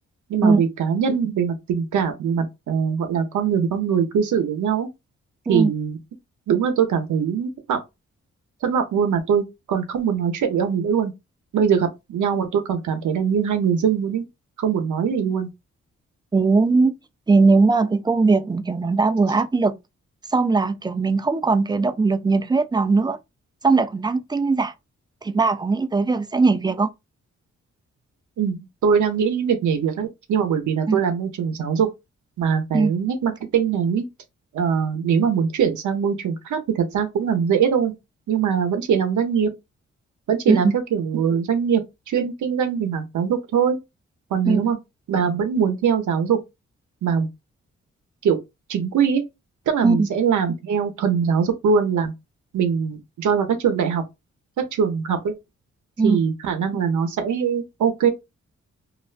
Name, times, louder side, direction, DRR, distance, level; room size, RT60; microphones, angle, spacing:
voice 1, 0.3-4.9 5.5-6.0 6.5-7.8 8.6-11.1 11.5-14.2 14.6-15.5 28.4-31.9 32.4-34.1 34.5-37.9 38.3-39.5 40.3-41.8 42.1-43.8 44.3-44.8 45.1-46.4 47.0-47.3 48.2-48.4 48.7-49.2 49.7-52.1 52.5-54.0 54.8-55.3 56.0-58.1, right 7 dB, 80° right, 0.7 m, -22 dB
voice 2, 16.3-16.9 17.3-19.8 20.3-23.2 23.6-24.7 25.2-26.9 30.9-31.0 32.7-32.9 40.5-40.7 44.4-44.6 49.8-50.1 56.0-56.2, right 3 dB, 15° right, 0.3 m, -19 dB
2.4 x 2.1 x 2.4 m
supercardioid pair, 50°, 30 cm